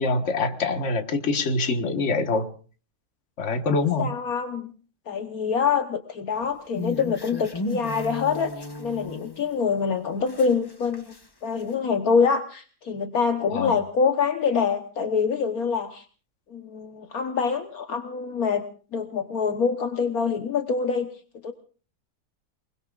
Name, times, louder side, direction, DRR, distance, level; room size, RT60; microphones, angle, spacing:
voice 1, 0.0-2.5 3.4-4.1 13.5-13.7, left 3 dB, 50° left, 7 dB, 1.7 m, -25 dB
voice 2, 4.0-4.7 5.1-11.1 11.4-16.0 16.5-18.7 18.9-21.1 21.4-21.5, left 5 dB, 65° left, 7 dB, 1.5 m, -25 dB
sound 1, 6.4-9.6 10.1-11.3 11.6-11.7, left 2 dB, 20° left, 0.9 m, -35 dB
29.0 x 20.5 x 2.4 m, 0.39 s
omnidirectional pair, 1.7 m